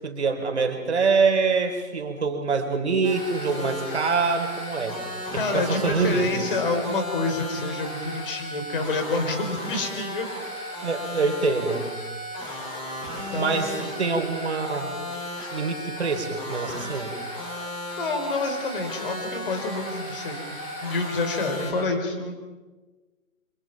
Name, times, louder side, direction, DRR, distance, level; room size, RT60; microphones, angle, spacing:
voice 1, 0.0-5.0 5.3-6.5 10.8-11.9 13.4-13.7 14.0-14.9 15.5-17.1, right 4 dB, 50° right, 5 dB, 4.0 m, -25 dB
sound 1, 3.0-21.7, equal, 10° left, 6.3 m, -35 dB
voice 2, 5.3-10.3 13.1-13.9 18.0-20.5 20.8-22.4, left 3 dB, 40° left, 5 dB, 4.4 m, -28 dB
29.0 x 26.5 x 4.7 m, 1.2 s
figure-of-eight pair, 140°, 42 cm